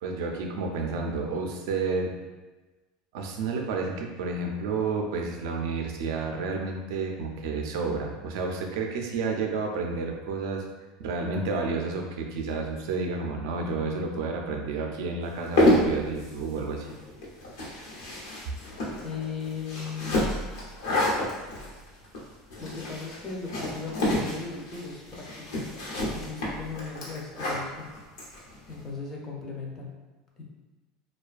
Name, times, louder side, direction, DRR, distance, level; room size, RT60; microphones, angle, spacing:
voice 1, 0.0-2.1 3.1-10.6 11.0-16.9, right 4 dB, 80° right, 2 dB, 0.4 m, -30 dB
sound 1, 15.3-28.8, left 1 dB, 90° left, 0.8 m, -29 dB
voice 2, 19.0-20.2 22.6-25.6 26.1-27.9 28.7-30.0 30.4-30.5, left 4 dB, 20° left, -2 dB, 0.4 m, -37 dB
2.4 x 2.2 x 2.3 m, 1.2 s
cardioid pair, 175°, 2 cm